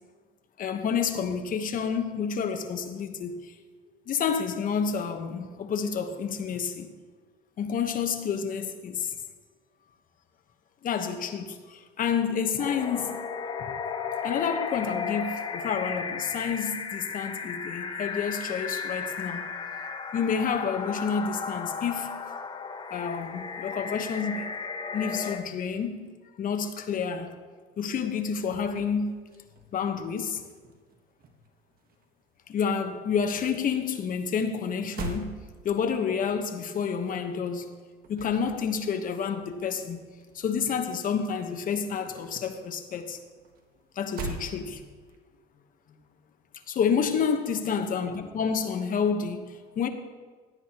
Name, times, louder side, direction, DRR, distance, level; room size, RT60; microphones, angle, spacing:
voice 1, 0.6-3.5 4.1-6.9 7.6-9.1 10.8-13.3 13.6-13.7 14.2-19.6 20.1-22.2 22.9-24.5 24.9-27.4 27.8-29.2 29.7-30.4 32.5-37.8 38.1-43.2 44.0-44.8 46.7-49.9, left 6 dB, 40° left, 1.1 m, -29 dB
sound 1, 12.6-25.4, left 5 dB, 25° left, 0.8 m, -35 dB
sound 2, 28.0-30.0 30.3-32.2 32.5-41.2 41.4-45.2, right 3 dB, 45° right, 1.5 m, -44 dB
16.5 x 10.5 x 3.0 m
cardioid pair, 115°, 21 cm